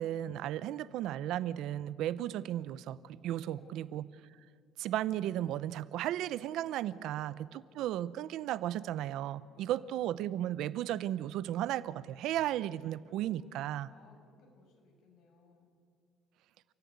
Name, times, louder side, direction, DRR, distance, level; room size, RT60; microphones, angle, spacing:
voice 1, 0.0-4.0 4.8-7.3 7.8-13.9, right 12 dB, 65° right, 0.6 m, -35 dB
voice 2, 0.6-1.1 3.4-4.0 6.9-7.9 9.5-10.1 13.1-15.7, left 1 dB, 65° left, 6.1 m, -62 dB
30.0 x 14.5 x 9.5 m
cardioid pair, 160°, 0 cm